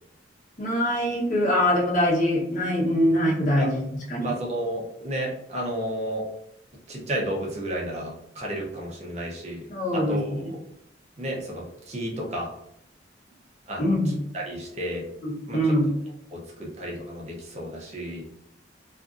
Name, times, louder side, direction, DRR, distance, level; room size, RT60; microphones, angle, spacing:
voice 1, 0.6-3.8 4.1-4.3 9.7-10.5 13.8-14.1 15.2-15.9, equal, 45° left, -4 dB, 0.8 m, -23 dB
voice 2, 4.2-6.2 6.9-9.6 9.9-10.3 11.2-12.5 13.7-15.0 15.5-15.6 16.3-18.2, right 1 dB, 35° right, -2 dB, 0.6 m, -32 dB
2.5 x 2.5 x 2.4 m, 0.79 s
head